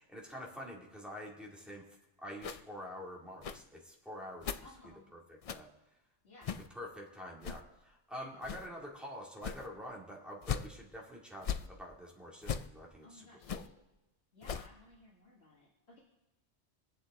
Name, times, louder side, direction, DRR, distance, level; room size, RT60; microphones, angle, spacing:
voice 1, 0.0-1.8 2.2-4.7 5.1-5.7 6.7-13.6, equal, ahead, -3 dB, 2.4 m, -47 dB
sound 1, 2.4-2.6 3.4-3.6 4.4-4.6 5.4-5.6 6.4-6.7 7.4-7.6 8.4-8.7 9.4-9.7 10.4-10.7 11.4-11.7 12.4-12.7 13.4-13.7 14.4-14.7, left 8 dB, 50° left, 0.4 m, -38 dB
voice 2, 4.6-5.1 6.2-6.6 13.0-13.7 14.3-16.0, left 2 dB, 70° left, -5 dB, 2.2 m, -58 dB
22.5 x 7.9 x 3.7 m, 1.0 s
omnidirectional pair, 1.1 m